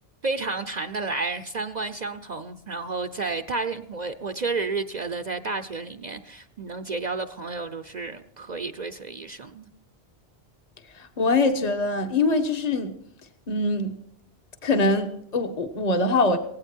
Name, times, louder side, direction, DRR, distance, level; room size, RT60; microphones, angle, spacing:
voice 1, 0.2-9.7, right 3 dB, 45° right, 0.7 m, -31 dB
voice 2, 10.9-12.9 13.5-14.0 14.6-16.4, left 2 dB, 40° left, 1.3 m, -23 dB
18.0 x 16.5 x 4.5 m
omnidirectional pair, 1.1 m